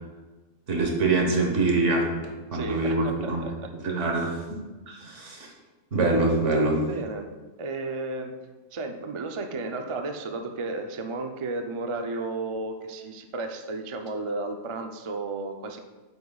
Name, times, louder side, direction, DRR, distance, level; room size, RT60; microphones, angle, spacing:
voice 1, 0.7-3.4 3.8-4.3 4.9-5.5 5.9-6.8, right 2 dB, 75° right, 1 dB, 1.6 m, -24 dB
voice 2, 2.5-3.7 4.3-4.4 6.8-7.3 7.6-8.4 8.7-15.8, right 3 dB, 40° right, 5 dB, 0.4 m, -33 dB
8.5 x 8.1 x 2.3 m, 1.2 s
omnidirectional pair, 1.3 m